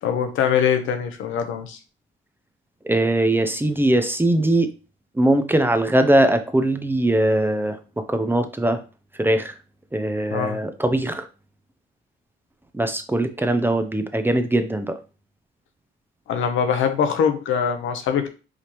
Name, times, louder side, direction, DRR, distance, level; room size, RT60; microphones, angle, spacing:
voice 1, 0.0-1.8 10.3-10.6 16.3-18.3, left 7 dB, 80° left, 7 dB, 0.8 m, -22 dB
voice 2, 2.8-4.7 5.2-7.8 8.1-8.8 9.2-9.5 9.9-11.3 12.7-15.0, right 1 dB, 10° right, 7 dB, 0.5 m, -21 dB
5.0 x 2.7 x 3.0 m, 0.32 s
cardioid pair, 90°, 20 cm